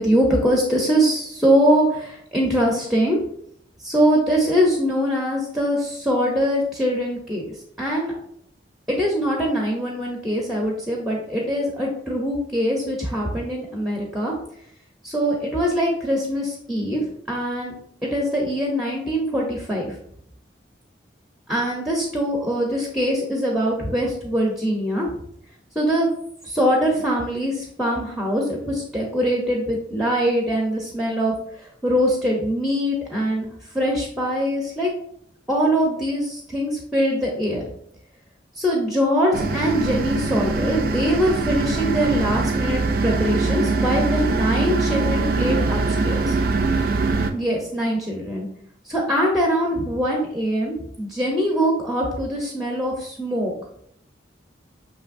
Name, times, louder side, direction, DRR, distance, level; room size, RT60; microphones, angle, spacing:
voice 1, 0.0-3.2 3.8-7.5 7.8-8.1 8.9-14.3 15.0-17.0 17.3-17.7 18.0-20.0 21.5-25.1 25.8-26.1 26.4-31.3 31.8-33.5 33.7-34.9 35.5-37.6 38.6-46.3 47.3-48.5 48.9-53.5, equal, ahead, -1 dB, 0.6 m, -22 dB
sound 1, 39.3-47.3, right 3 dB, 50° right, 0.3 m, -22 dB
6.0 x 2.9 x 2.5 m, 0.69 s
head